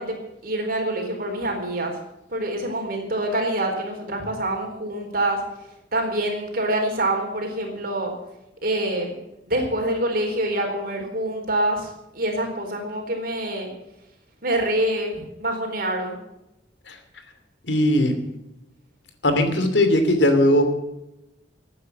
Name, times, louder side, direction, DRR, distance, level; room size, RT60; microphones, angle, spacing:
voice 1, 0.0-1.9 2.3-5.4 5.9-8.1 8.6-9.2 9.5-13.7 14.4-16.2, right 1 dB, 55° right, 2 dB, 4.2 m, -26 dB
voice 2, 17.7-18.1 19.2-20.7, left 1 dB, 85° left, 7 dB, 2.7 m, -18 dB
14.5 x 9.3 x 8.5 m, 0.92 s
head